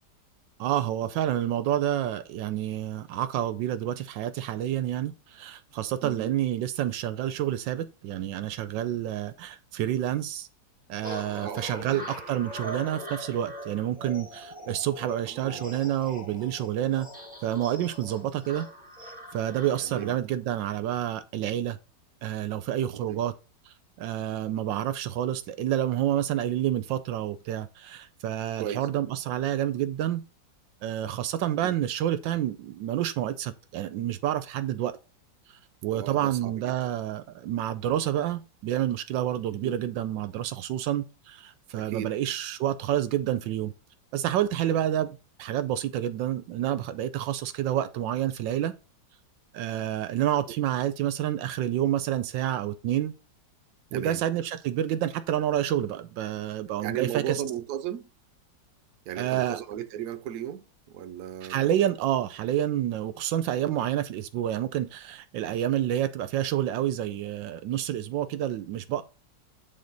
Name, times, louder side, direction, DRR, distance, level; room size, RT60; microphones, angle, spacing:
voice 1, 0.6-10.5 10.9-18.7 19.3-21.8 22.2-23.3 23.7-30.2 30.8-35.0 35.8-43.7 44.1-48.7 49.5-53.1 53.9-57.4 59.2-59.6 61.4-69.0, right 11 dB, 80° right, 1.3 m, -29 dB
voice 2, 6.0-6.3 11.4-12.1 15.2-15.6 19.8-20.2 23.0-23.2 28.6-28.9 31.5-31.8 35.9-36.7 39.5-39.7 41.7-42.2 53.9-54.2 56.8-58.1 59.1-61.7, right 10 dB, 65° right, 1.1 m, -36 dB
sound 1, 11.0-20.2, equal, 5° right, 1.7 m, -42 dB
8.7 x 3.8 x 3.9 m
omnidirectional pair, 2.0 m